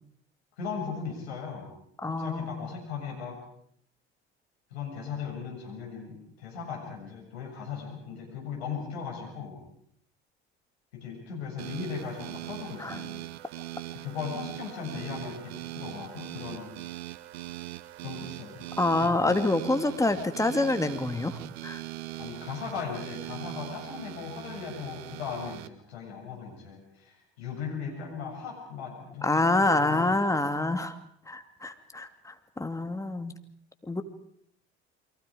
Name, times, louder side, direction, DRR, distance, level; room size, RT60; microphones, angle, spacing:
voice 1, 0.6-1.7 2.0-3.4 4.7-9.6 10.9-13.2 13.9-16.7 18.0-18.6 19.0-19.2 22.2-30.1, left 6 dB, 80° left, 1 dB, 7.4 m, -38 dB
voice 2, 2.0-2.7 12.8-13.0 18.8-21.8 29.2-31.0 31.3-33.3 33.9-34.0, left 2 dB, 10° left, 7 dB, 2.5 m, -27 dB
sound 1, 11.6-25.7, right 17 dB, 75° right, 0.9 m, -41 dB
29.5 x 23.0 x 5.1 m, 0.65 s
hypercardioid pair, 65°, 32 cm